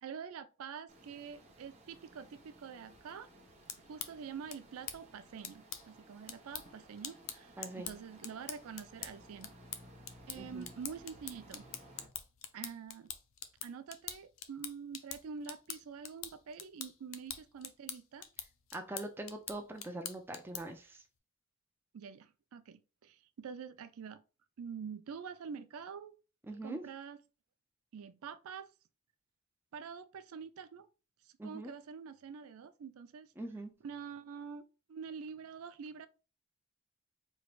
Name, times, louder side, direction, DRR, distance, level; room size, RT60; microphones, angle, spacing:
voice 1, 0.0-3.3 3.9-9.5 10.3-11.7 12.5-13.1 13.6-18.3 21.9-24.2 24.6-26.1 26.6-27.2 27.9-28.7 29.7-30.9 31.4-33.3 33.8-36.1, right 6 dB, 75° right, 0.4 m, -46 dB
sound 1, 0.9-12.1, right 1 dB, 30° right, 0.8 m, -58 dB
sound 2, 3.5-20.8, left 9 dB, 65° left, 0.5 m, -46 dB
voice 2, 7.6-7.9 10.4-10.7 18.7-21.0 26.5-26.8 31.4-31.7 33.4-33.7, right 1 dB, 10° right, 0.4 m, -43 dB
4.6 x 3.1 x 2.4 m
head